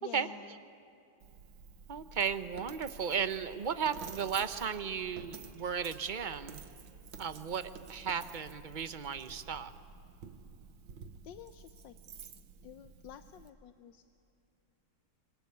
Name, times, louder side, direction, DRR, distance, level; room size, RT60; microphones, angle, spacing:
voice 1, 0.0-0.6 11.2-12.0 12.6-14.0, left 10 dB, 70° left, 10 dB, 1.4 m, -50 dB
Coin (dropping), 1.2-13.5, right 6 dB, 80° right, 2.0 m, -51 dB
voice 2, 1.9-6.6 7.2-9.7, right 7 dB, 40° right, 12 dB, 0.7 m, -35 dB
26.0 x 23.5 x 9.6 m, 2.8 s
omnidirectional pair, 2.1 m